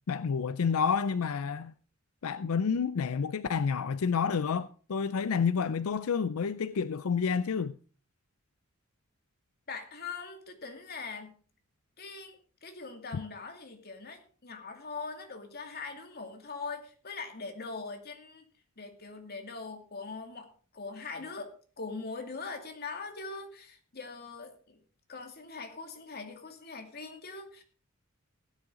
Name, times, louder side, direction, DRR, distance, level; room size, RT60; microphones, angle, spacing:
voice 1, 0.1-1.7 2.2-7.8, left 6 dB, 80° left, 0.5 m, -29 dB
voice 2, 9.7-11.4 12.0-18.4 18.8-24.8 25.1-27.6, left 4 dB, 45° left, 2.4 m, -42 dB
16.5 x 9.8 x 3.8 m
head